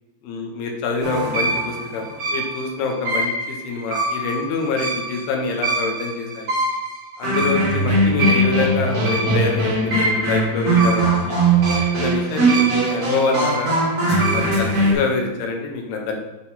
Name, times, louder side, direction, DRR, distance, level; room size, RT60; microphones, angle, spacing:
voice 1, 0.2-6.5 7.2-11.4 11.9-13.7 14.3-16.2, left 4 dB, 75° left, 2 dB, 2.6 m, -26 dB
sound 1, 1.0-14.9, right 2 dB, 60° right, 0.9 m, -21 dB
7.4 x 3.8 x 4.1 m, 1.1 s
omnidirectional pair, 5.0 m